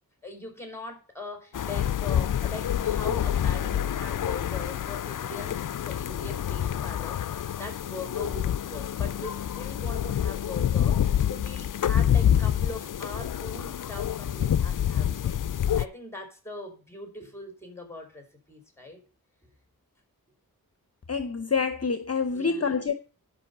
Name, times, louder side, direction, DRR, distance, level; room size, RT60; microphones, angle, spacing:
voice 1, 0.2-19.0 22.3-22.7, left 2 dB, 5° left, 4.3 m, -41 dB
sound 1, 1.5-15.9, left 10 dB, 60° left, 0.5 m, -27 dB
voice 2, 21.1-22.9, left 5 dB, 40° left, 0.9 m, -27 dB
11.5 x 5.5 x 6.7 m
wide cardioid pair, 55°, 36 cm